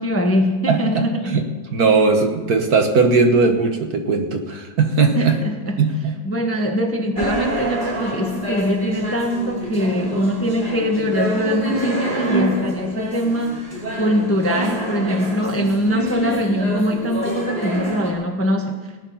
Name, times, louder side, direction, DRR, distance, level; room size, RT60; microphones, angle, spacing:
voice 1, 0.0-1.4 5.1-5.8 6.2-13.7 14.0-18.8, equal, 10° left, 3 dB, 1.0 m, -22 dB
voice 2, 0.7-1.5 1.7-5.4 5.8-6.2, right 4 dB, 55° right, 5 dB, 1.6 m, -18 dB
sound 1, 7.2-18.1, right 1 dB, 25° right, 3.3 m, -27 dB
18.5 x 9.8 x 5.6 m, 1.3 s
omnidirectional pair, 2.1 m